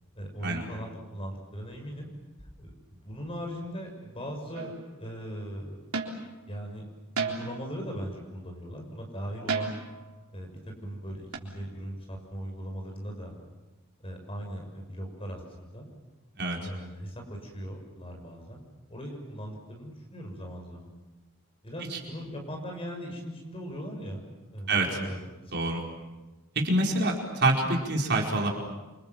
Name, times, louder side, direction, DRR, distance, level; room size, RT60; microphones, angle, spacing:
voice 1, 0.1-2.1 2.6-4.7 5.0-5.8 6.5-6.9 7.1-9.7 10.3-13.3 14.0-15.9 16.6-20.9 21.6-24.2 24.5-25.7, equal, 25° left, 2 dB, 6.5 m, -39 dB
sound 1, 4.5-4.9 5.9-6.3 7.2-7.7 9.5-10.0 11.3-11.4, right 5 dB, 80° right, 3.9 m, -32 dB
voice 2, 24.7-25.0 25.5-25.8 26.5-28.5, right 2 dB, 50° right, -1 dB, 4.7 m, -26 dB
29.0 x 25.5 x 7.5 m, 1.1 s
head